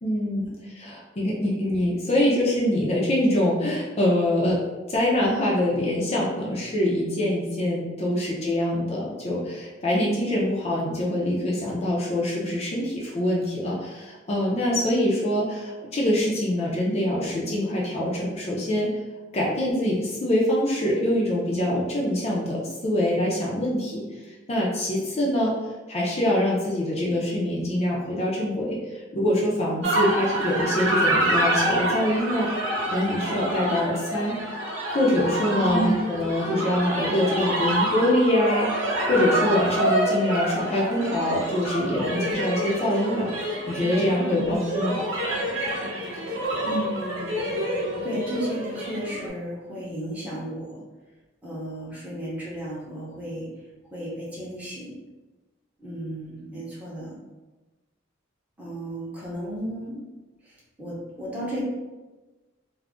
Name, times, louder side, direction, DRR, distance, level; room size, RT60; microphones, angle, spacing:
voice 1, 0.0-4.6 4.9-19.0 19.3-25.6 25.9-32.5 32.9-34.4 34.9-45.0, left 1 dB, 35° left, -4 dB, 0.5 m, -24 dB
sound 1, 29.8-49.3, right 1 dB, 85° right, 0.8 m, -27 dB
voice 2, 35.6-36.0 44.3-44.6 46.1-47.4 47.7-50.8 51.4-53.5 53.9-55.0 55.8-57.2 58.6-60.0 60.4-61.6, right 1 dB, 10° right, -7 dB, 0.7 m, -34 dB
2.4 x 2.0 x 3.4 m, 1.2 s
head